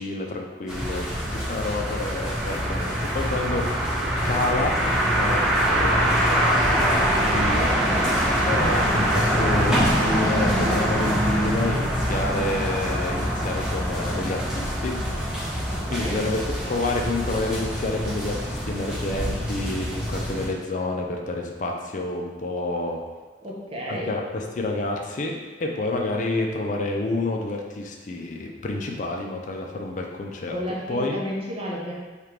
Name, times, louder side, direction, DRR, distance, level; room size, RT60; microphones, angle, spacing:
voice 1, 0.0-3.6 4.2-4.7 5.1-6.4 6.7-14.9 15.2-15.6 15.9-16.4 16.6-23.0 23.9-30.5 30.9-31.2, left 2 dB, 45° left, 1 dB, 0.4 m, -29 dB
sound 1, 0.7-20.5, equal, 5° right, 1.0 m, -24 dB
voice 2, 15.7-16.3 23.4-24.2 30.5-31.9, equal, 30° right, -4 dB, 0.7 m, -32 dB
3.4 x 2.4 x 4.4 m, 1.3 s
head